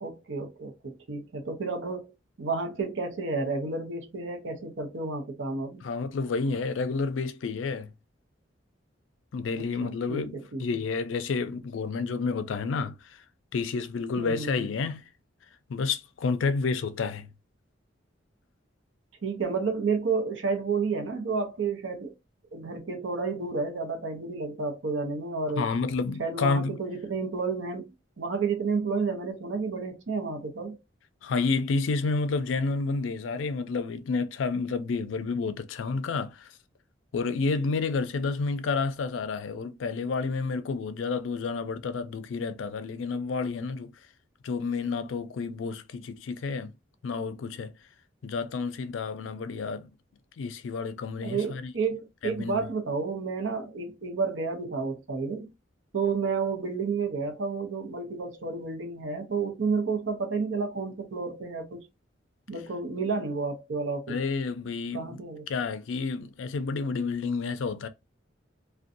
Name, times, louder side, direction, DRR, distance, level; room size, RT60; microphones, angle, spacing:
voice 1, 0.0-2.1 2.4-5.8 9.8-10.6 14.2-14.7 19.2-22.1 22.5-25.7 26.2-27.9 28.2-30.8 51.2-55.5 55.9-61.8 62.5-64.2 64.9-65.5, right 4 dB, 75° right, 0.7 m, -31 dB
voice 2, 5.8-7.9 9.3-13.2 13.5-15.1 15.7-17.3 25.6-26.8 31.2-36.6 37.1-43.9 44.4-46.7 47.0-47.8 48.2-49.9 50.4-51.7 52.2-52.6 64.1-65.2 65.5-67.9, left 4 dB, 80° left, 0.4 m, -30 dB
2.5 x 2.2 x 2.5 m
head